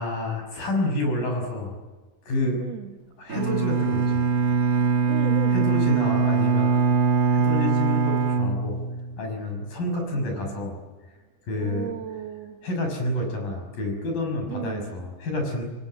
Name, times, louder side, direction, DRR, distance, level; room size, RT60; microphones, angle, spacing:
voice 1, 0.0-1.7 2.3-2.6 3.2-4.3 5.5-6.8 7.3-8.8 9.2-10.8 11.5-11.9 12.6-15.6, left 1 dB, 55° left, 3 dB, 8.0 m, -28 dB
voice 2, 2.6-3.0 5.0-5.7 10.2-10.6 11.6-12.6 14.5-14.9, right 10 dB, 75° right, 5 dB, 1.5 m, -36 dB
Bowed string instrument, 3.3-9.3, right 5 dB, 40° right, 1.2 m, -22 dB
28.0 x 22.5 x 9.0 m, 1.3 s
omnidirectional pair, 4.9 m